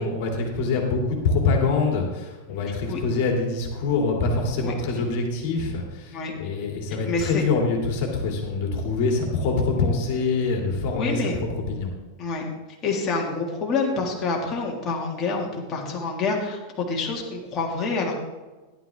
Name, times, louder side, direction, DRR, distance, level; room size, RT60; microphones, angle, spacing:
voice 1, 0.0-11.9, left 3 dB, 45° left, 1 dB, 2.3 m, -25 dB
voice 2, 7.1-7.4 10.9-11.4 12.2-12.5 12.8-18.2, left 4 dB, 25° left, -1 dB, 1.9 m, -27 dB
11.5 x 11.0 x 3.4 m, 1.2 s
supercardioid pair, 165°, 0 cm